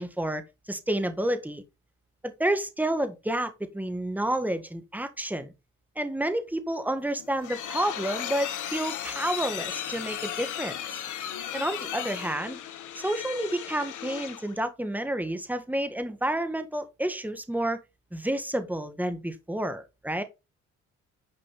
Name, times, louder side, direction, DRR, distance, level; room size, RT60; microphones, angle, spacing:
voice 1, 0.0-1.6 2.2-5.5 5.9-11.0 11.5-12.6 12.9-17.8 18.1-20.2, right 1 dB, 5° right, 1.6 m, -30 dB
sound 1, 7.0-14.6, left 10 dB, 80° left, 1.5 m, -36 dB
9.7 x 5.0 x 4.1 m
cardioid pair, 90°, 30 cm